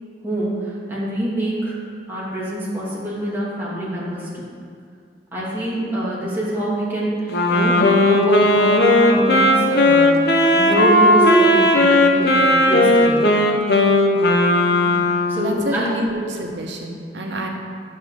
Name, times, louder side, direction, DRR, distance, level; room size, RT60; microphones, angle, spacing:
voice 1, 0.2-1.8 2.1-4.5 5.3-10.2 10.5-13.3 14.9-15.0 15.3-15.9, equal, 15° right, -8 dB, 2.2 m, -25 dB
Wind instrument woodwind instrument, 7.3-15.5, left 1 dB, 65° left, 0.8 m, -16 dB
voice 2, 15.3-17.5, right 1 dB, 90° right, 1 dB, 1.1 m, -27 dB
9.9 x 6.6 x 3.7 m, 2.3 s
head